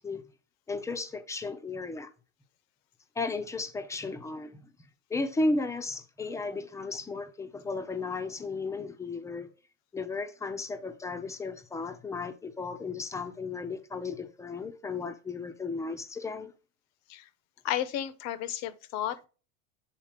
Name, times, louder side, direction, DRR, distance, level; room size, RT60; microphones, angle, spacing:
voice 1, 0.7-2.1 3.2-4.7 5.1-9.5 9.9-16.5, left 3 dB, 10° left, 0.6 m, -34 dB
voice 2, 17.6-19.3, left 11 dB, 50° left, 0.8 m, -33 dB
7.5 x 4.0 x 3.5 m
supercardioid pair, 125°, 36 cm